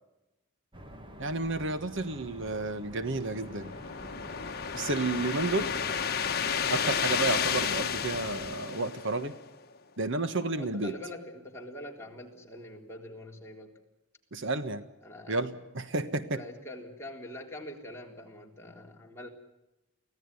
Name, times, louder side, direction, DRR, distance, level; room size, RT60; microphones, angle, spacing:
sound 1, 0.7-8.5, equal, 25° right, 2.2 m, -48 dB
voice 1, 1.2-3.7 4.7-5.7 6.7-9.3 10.0-10.9 14.3-14.8 15.3-16.4, right 2 dB, 65° right, 11 dB, 1.4 m, -31 dB
sound 2, 3.0-9.5, left 7 dB, 50° left, 1.4 m, -32 dB
voice 2, 10.6-13.7 15.0-15.4 16.3-19.3, left 1 dB, 15° left, -1 dB, 3.8 m, -44 dB
24.5 x 17.0 x 9.7 m, 0.98 s
head